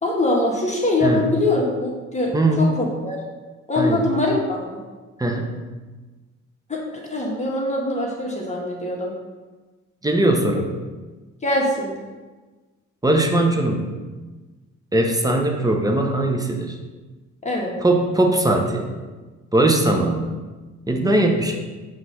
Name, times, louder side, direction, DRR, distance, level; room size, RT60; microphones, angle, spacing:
voice 1, 0.0-3.2 3.7-4.8 6.7-9.1 11.4-12.0 17.4-17.7, left 2 dB, 25° left, -2 dB, 1.4 m, -23 dB
voice 2, 2.3-2.7 3.8-4.1 5.2-5.5 10.0-10.7 13.0-13.8 14.9-16.7 17.8-18.9 19.5-20.3 20.9-21.6, right 1 dB, 10° right, 3 dB, 0.8 m, -20 dB
6.0 x 3.2 x 5.6 m, 1.3 s
cardioid pair, 90°, 30 cm